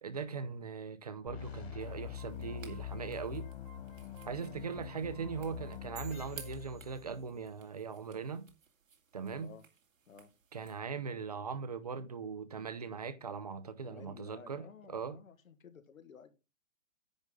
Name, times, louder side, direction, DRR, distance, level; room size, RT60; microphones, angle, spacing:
voice 1, 0.0-3.5 4.3-8.5 9.1-9.6 10.5-15.2, right 5 dB, 30° right, 0.7 m, -40 dB
sound 1, 1.3-7.4, left 10 dB, 50° left, 2.5 m, -45 dB
sound 2, 1.8-10.8, right 6 dB, 75° right, 2.3 m, -58 dB
sound 3, 6.0-7.7, right 8 dB, 55° right, 2.0 m, -55 dB
voice 2, 9.3-9.6 10.1-10.3 13.8-16.3, left 6 dB, 80° left, 1.9 m, -54 dB
10.5 x 7.9 x 3.8 m
hypercardioid pair, 180°, 40 cm